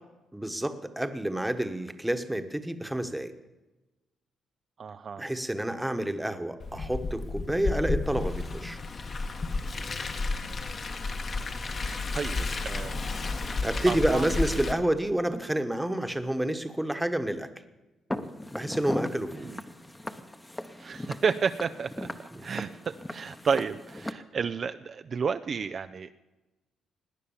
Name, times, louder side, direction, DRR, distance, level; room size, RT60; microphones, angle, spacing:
voice 1, 0.3-3.3 5.2-8.8 12.4-12.5 13.6-17.5 18.5-19.5 22.3-22.5, right 1 dB, 5° right, 9 dB, 1.3 m, -29 dB
voice 2, 4.8-5.3 10.8-11.4 11.8-12.4 12.6-13.0 13.9-14.4 19.4-19.6 20.8-26.1, right 6 dB, 45° right, 10 dB, 0.5 m, -32 dB
Car, 6.6-14.7, left 3 dB, 40° left, 1.4 m, -32 dB
Walk footsteps, 18.1-24.1, left 1 dB, 10° left, 1.0 m, -38 dB
18.0 x 9.9 x 7.2 m, 1.1 s
cardioid pair, 90°, 0 cm